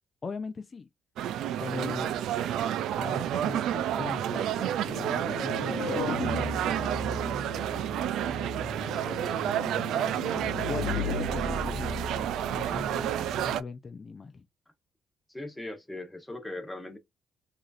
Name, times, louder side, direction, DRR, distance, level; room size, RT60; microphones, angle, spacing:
voice 1, 0.2-0.9 1.6-2.1 3.0-6.5 10.4-14.4, left 4 dB, 35° left, 0.5 m, -40 dB
sound 1, 1.2-13.6, right 10 dB, 85° right, 0.4 m, -30 dB
sound 2, 4.8-13.6, left 4 dB, 70° left, 0.8 m, -36 dB
voice 2, 8.8-9.4 10.3-10.5 15.3-17.0, left 2 dB, 10° left, 1.2 m, -40 dB
4.8 x 2.8 x 2.5 m
cardioid pair, 90°, 0 cm